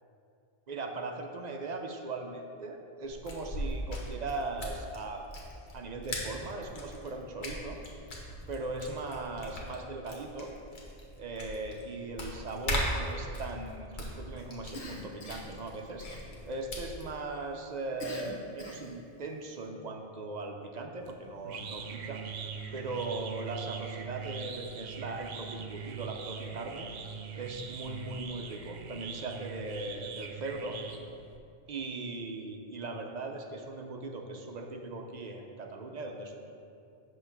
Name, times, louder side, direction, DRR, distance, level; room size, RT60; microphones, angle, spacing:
voice 1, 0.7-5.3 5.7-7.8 8.5-10.5 11.2-16.1 16.5-22.2 22.7-26.9 27.3-30.8 31.7-36.4, right 3 dB, 45° right, 3 dB, 0.6 m, -39 dB
sound 1, 3.0-17.1, equal, 50° left, 1.1 m, -40 dB
Cough, 14.7-15.6 16.0-16.6 18.0-19.0, left 1 dB, 65° left, 1.1 m, -44 dB
sound 2, 21.0-31.4, right 6 dB, 85° right, 0.9 m, -42 dB
7.8 x 3.0 x 5.9 m, 2.5 s
omnidirectional pair, 1.1 m